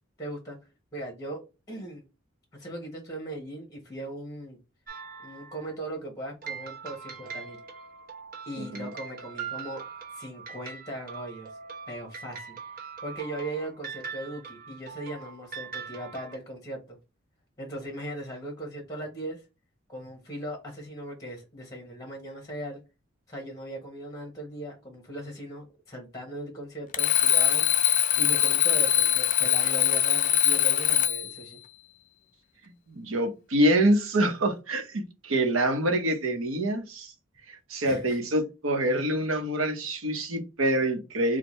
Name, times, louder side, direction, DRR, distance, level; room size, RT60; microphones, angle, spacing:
voice 1, 0.2-0.6 0.9-1.4 1.7-2.0 2.5-4.6 5.2-7.6 8.5-9.8 10.1-11.5 11.9-12.6 13.0-17.0 17.6-19.4 19.9-22.8 23.3-27.7 28.2-31.6 37.8-38.2, right 1 dB, 15° left, 0.9 m, -38 dB
sound 1, 4.9-5.8 6.4-16.4, right 6 dB, 45° right, 0.9 m, -41 dB
voice 2, 8.6-8.9 32.9-37.1 37.5-41.4, right 1 dB, 80° right, 0.9 m, -26 dB
Alarm, 26.9-31.4, left 11 dB, 40° left, 0.3 m, -22 dB
4.4 x 2.2 x 3.0 m
head